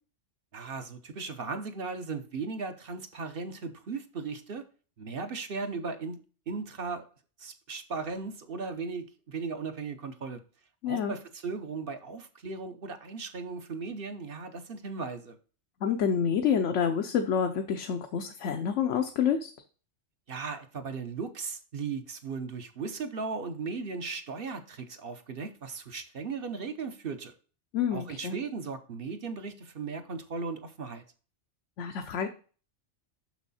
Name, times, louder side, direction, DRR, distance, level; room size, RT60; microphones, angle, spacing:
voice 1, 0.5-4.6 5.0-6.2 6.5-7.0 7.4-10.4 10.8-15.4 20.3-27.3 27.9-31.0, right 4 dB, 55° right, 1.0 m, -37 dB
voice 2, 10.8-11.1 15.8-19.5 27.7-28.3 31.8-32.3, left 7 dB, 85° left, 1.1 m, -28 dB
6.3 x 6.2 x 4.1 m
omnidirectional pair, 1.2 m